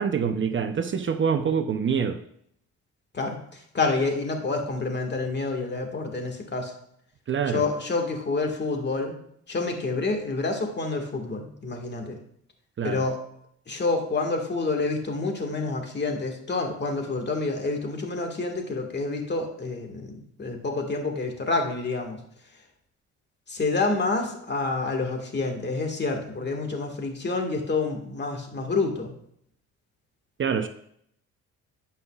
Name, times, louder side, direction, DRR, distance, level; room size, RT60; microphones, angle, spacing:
voice 1, 0.0-2.2 7.3-7.6 12.8-13.0 30.4-30.7, right 6 dB, 40° right, 8 dB, 0.7 m, -25 dB
voice 2, 3.1-6.7 7.5-9.1 9.5-12.2 12.8-13.2 13.7-22.2 23.5-29.1, left 3 dB, 35° left, 3 dB, 1.8 m, -28 dB
15.0 x 5.6 x 2.4 m, 0.70 s
cardioid pair, 90°, 30 cm